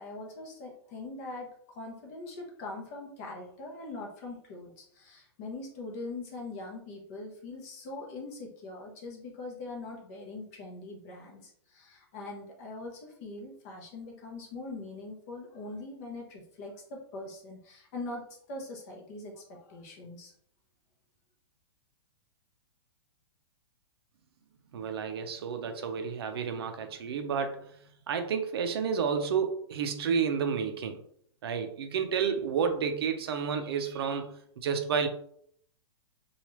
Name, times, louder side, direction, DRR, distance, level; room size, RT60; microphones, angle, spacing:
voice 1, 0.0-20.3, left 2 dB, 30° left, 0 dB, 0.7 m, -42 dB
voice 2, 24.7-27.7 28.1-31.0 31.4-35.1, right 6 dB, 60° right, 7 dB, 0.5 m, -30 dB
2.9 x 2.3 x 3.0 m, 0.64 s
hypercardioid pair, 170°, 15 cm